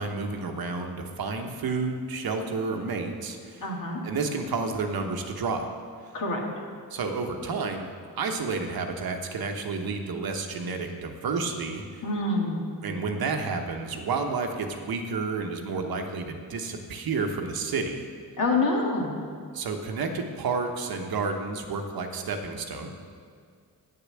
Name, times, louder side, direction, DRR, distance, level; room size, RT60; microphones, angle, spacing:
voice 1, 0.0-3.7 4.0-5.7 6.9-7.9 8.2-12.0 12.8-18.1 19.5-22.9, right 4 dB, 75° right, 4 dB, 1.1 m, -30 dB
voice 2, 3.6-4.0 6.1-6.4 12.0-12.6 18.4-19.1, left 2 dB, 60° left, -1 dB, 2.1 m, -26 dB
8.9 x 6.8 x 7.5 m, 2.1 s
cardioid pair, 100°, 37 cm